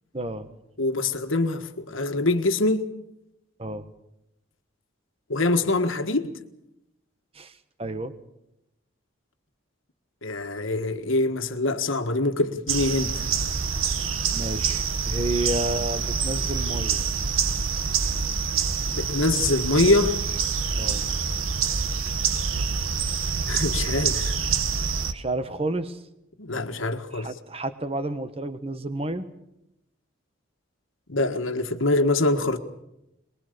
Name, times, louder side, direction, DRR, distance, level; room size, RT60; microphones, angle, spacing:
voice 1, 0.1-0.5 3.6-3.9 7.3-7.5 7.8-8.1 14.3-17.0 20.8-21.1 25.1-26.0 27.1-29.3, right 1 dB, 30° right, 1.2 m, -30 dB
voice 2, 0.8-2.8 5.3-6.3 10.2-13.2 18.9-20.2 23.5-24.3 26.4-27.3 31.1-32.6, left 2 dB, 75° left, 1.6 m, -24 dB
sound 1, 12.7-25.1, right 6 dB, 85° right, 1.2 m, -26 dB
23.5 x 21.0 x 6.8 m
head